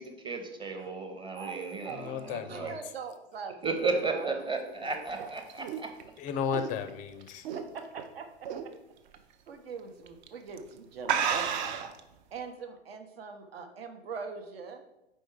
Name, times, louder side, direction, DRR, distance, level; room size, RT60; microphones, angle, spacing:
voice 1, 0.0-2.7 3.6-5.9, right 3 dB, 15° right, 4 dB, 0.8 m, -34 dB
voice 2, 1.3-3.6 3.9-5.3 7.5-8.5 9.5-11.9 12.3-14.8, right 5 dB, 70° right, 6 dB, 0.9 m, -42 dB
voice 3, 1.9-2.8 6.2-7.5, left 7 dB, 25° left, 9 dB, 0.4 m, -34 dB
sound 1, 4.9-8.0 8.4-8.8 9.1-9.2 10.1-10.3 10.6-10.7 11.0-12.0, right 7 dB, 45° right, 0.6 m, -32 dB
4.5 x 4.5 x 4.8 m, 0.90 s
figure-of-eight pair, 95°, 31 cm